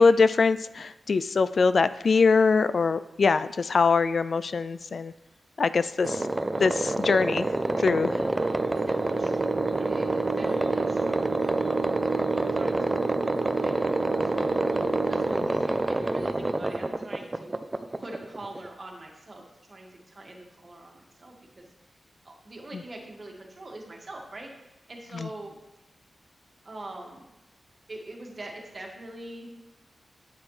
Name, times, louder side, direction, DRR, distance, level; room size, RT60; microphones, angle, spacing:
voice 1, 0.0-5.1 5.6-6.3 6.6-7.5 7.8-8.2 25.1-25.3, left 4 dB, 65° left, 14 dB, 0.3 m, -23 dB
sound 1, 6.0-18.7, right 2 dB, 25° right, 0.5 m, -27 dB
voice 2, 8.1-12.1 12.5-13.7 14.0-14.6 15.1-17.6 18.0-21.7 22.2-25.6 26.6-27.2 27.9-29.5, right 1 dB, 45° right, 0 dB, 1.9 m, -44 dB
sound 2, 8.3-15.4, right 6 dB, 60° right, 0.7 m, -34 dB
9.4 x 8.4 x 3.3 m, 0.97 s
cardioid pair, 70°, 0 cm